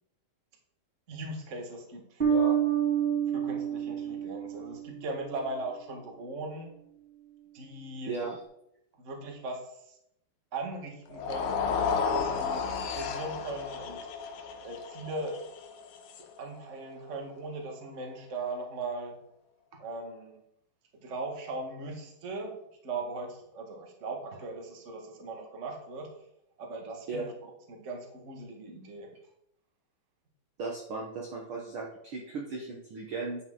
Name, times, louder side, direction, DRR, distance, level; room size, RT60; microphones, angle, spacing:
voice 1, 1.1-2.6 3.3-6.7 7.5-8.1 9.0-10.0 10.5-11.8 12.1-14.0 14.6-15.4 16.4-19.1 19.7-20.4 21.0-22.6 22.8-26.1 26.6-27.3 27.7-29.1, right 2 dB, 45° right, 1 dB, 0.9 m, -39 dB
Bass guitar, 2.2-5.2, right 8 dB, 25° right, 1.3 m, -28 dB
voice 2, 8.1-8.4 27.1-27.2 30.6-33.4, right 4 dB, 85° right, -1 dB, 1.1 m, -36 dB
sound 1, 11.1-17.4, left 5 dB, 70° left, 2.1 m, -33 dB
10.5 x 8.6 x 3.8 m, 0.77 s
omnidirectional pair, 4.2 m